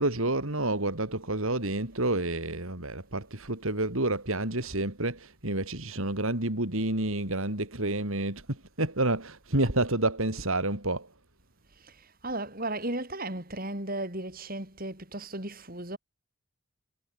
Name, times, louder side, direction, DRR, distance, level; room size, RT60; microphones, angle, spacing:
voice 1, 0.0-11.1, right 2 dB, 70° right, 4.2 m, -29 dB
voice 2, 12.2-16.0, right 1 dB, 40° right, 7.9 m, -35 dB
head